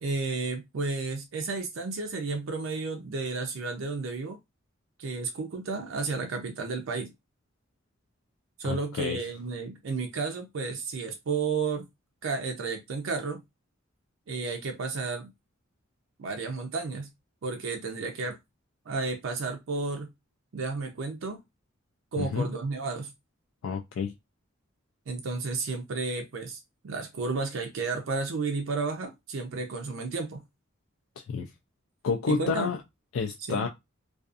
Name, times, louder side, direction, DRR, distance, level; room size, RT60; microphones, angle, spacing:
voice 1, 0.0-4.4 5.0-7.1 8.6-11.9 12.2-13.4 14.3-15.3 16.2-17.1 17.4-18.4 18.9-20.1 20.5-21.4 22.1-23.1 25.1-30.4 32.3-32.7 33.5-33.7, right 4 dB, 70° right, 0.4 m, -32 dB
voice 2, 8.6-9.2 22.2-22.5 23.6-24.1 31.2-31.5 32.0-32.8 33.1-33.7, left 5 dB, 75° left, 0.3 m, -29 dB
2.5 x 2.3 x 2.4 m
head